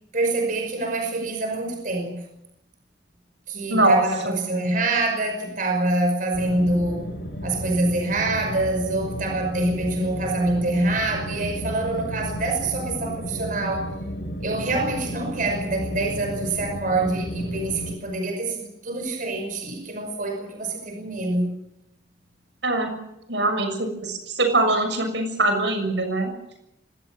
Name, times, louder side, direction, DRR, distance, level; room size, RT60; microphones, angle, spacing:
voice 1, 0.1-2.3 3.5-7.0 7.4-13.9 14.4-21.5, right 2 dB, 50° right, 4 dB, 5.5 m, -26 dB
voice 2, 3.7-4.4 22.6-22.9 23.3-26.3, right 2 dB, 75° right, 6 dB, 6.7 m, -22 dB
sound 1, 6.3-17.9, equal, 65° left, 4.7 m, -33 dB
24.5 x 18.5 x 7.5 m, 0.84 s
head